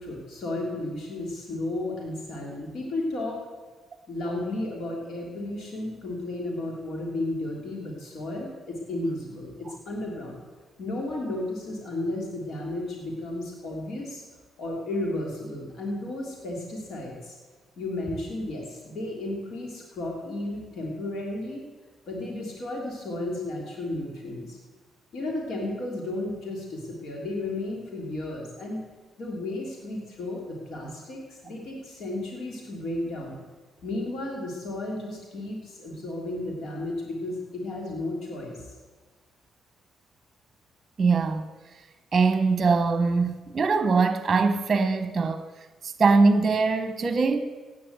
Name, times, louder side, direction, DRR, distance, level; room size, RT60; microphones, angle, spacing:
voice 1, 0.0-3.4 4.1-10.4 10.8-14.2 14.6-17.4 17.8-21.6 22.1-24.6 25.1-28.8 29.2-33.4 33.8-38.7, left 2 dB, 65° left, 3.3 m, -33 dB
voice 2, 41.0-41.5 42.1-45.5 45.8-47.4, right 4 dB, 35° right, 1.1 m, -22 dB
16.5 x 9.9 x 8.1 m
cardioid pair, 90°, 0 cm